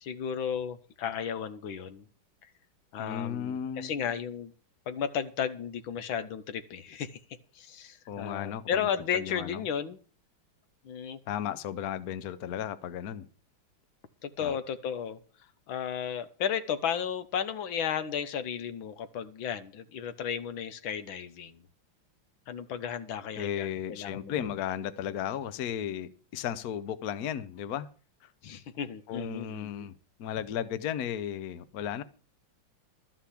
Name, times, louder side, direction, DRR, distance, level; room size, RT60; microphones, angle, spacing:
voice 1, 0.0-2.1 2.9-4.5 4.9-7.2 7.6-10.0 10.9-11.2 14.2-15.2 15.7-21.6 22.5-24.3 28.4-29.9, left 8 dB, 80° left, 11 dB, 1.8 m, -34 dB
voice 2, 3.0-3.9 8.1-9.6 11.3-13.3 14.4-14.5 23.4-27.9 28.2-28.3 29.1-29.9 30.2-32.0, left 9 dB, 60° left, 13 dB, 1.1 m, -35 dB
13.0 x 5.9 x 8.4 m, 0.39 s
omnidirectional pair, 2.2 m